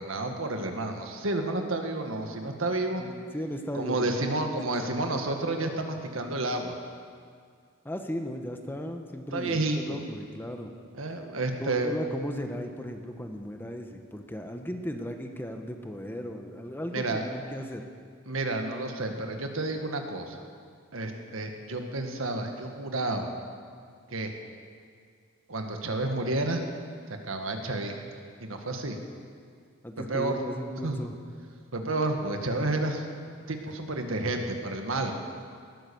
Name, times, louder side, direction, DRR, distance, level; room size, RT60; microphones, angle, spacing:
voice 1, 0.0-3.0 3.7-6.7 9.3-10.0 10.9-11.9 16.9-17.2 18.3-20.4 20.9-23.3 24.1-24.3 25.5-26.6 27.2-28.0 28.4-29.0 30.1-30.4 30.8-31.0 31.7-33.0 33.5-35.1, right 2 dB, 75° right, 4 dB, 1.6 m, -30 dB
voice 2, 3.0-4.5 4.8-5.1 7.8-10.7 11.6-17.8 29.8-31.1 33.7-33.8, equal, 10° left, 5 dB, 0.9 m, -36 dB
18.5 x 9.7 x 7.0 m, 2.1 s
head